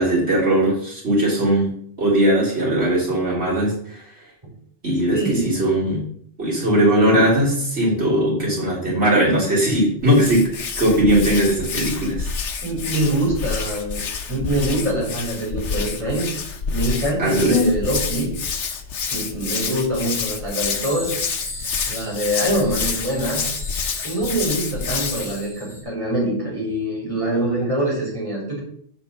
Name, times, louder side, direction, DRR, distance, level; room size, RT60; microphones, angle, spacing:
voice 1, 0.0-1.7 2.0-4.0 4.8-6.0 6.4-12.3 17.2-17.7, right 1 dB, 65° right, -7 dB, 3.5 m, -19 dB
voice 2, 5.1-5.6 12.6-14.0 14.3-16.4 16.7-18.3 19.1-21.1 21.9-23.5 24.0-28.6, right 1 dB, 25° right, -4 dB, 3.6 m, -24 dB
Hands, 10.0-25.4, left 5 dB, 85° left, 1.3 m, -28 dB
sound 1, 20.6-25.8, left 1 dB, 5° left, 2.7 m, -37 dB
7.5 x 5.2 x 5.6 m, 0.63 s
omnidirectional pair, 1.2 m